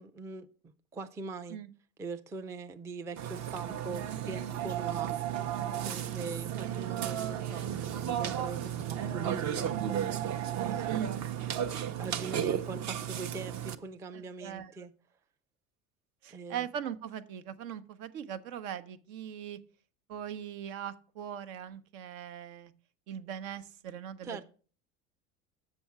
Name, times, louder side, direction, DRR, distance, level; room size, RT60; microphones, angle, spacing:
voice 1, 0.0-1.6 2.0-5.1 5.9-10.3 10.5-11.0 12.0-14.9 16.3-16.7 24.2-24.4, right 4 dB, 10° right, 0.3 m, -42 dB
Burping eructation, 3.2-13.8, right 10 dB, 40° right, 0.7 m, -34 dB
voice 2, 5.8-6.3 6.6-6.8 10.9-11.2 14.1-14.7 16.2-19.6 20.1-22.7 23.1-24.4, right 9 dB, 70° right, 0.8 m, -40 dB
Bass guitar, 7.6-12.0, right 5 dB, 25° right, 1.0 m, -48 dB
7.0 x 5.7 x 5.8 m
hypercardioid pair, 80°, 42 cm